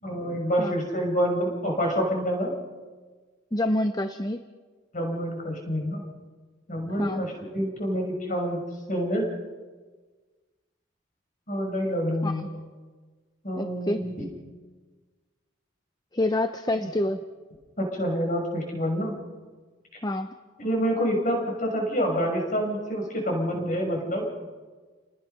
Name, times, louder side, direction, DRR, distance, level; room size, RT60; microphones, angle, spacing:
voice 1, 0.0-2.5 4.9-6.0 6.7-8.6 8.9-9.3 11.5-12.5 13.4-14.3 16.8-16.9 17.8-19.1 20.6-24.3, equal, 40° left, 1 dB, 6.2 m, -27 dB
voice 2, 3.5-4.5 7.0-7.2 12.2-12.5 13.6-14.0 16.1-17.2 20.0-20.3, left 1 dB, 20° left, 8 dB, 0.7 m, -27 dB
30.0 x 19.5 x 5.8 m, 1.4 s
head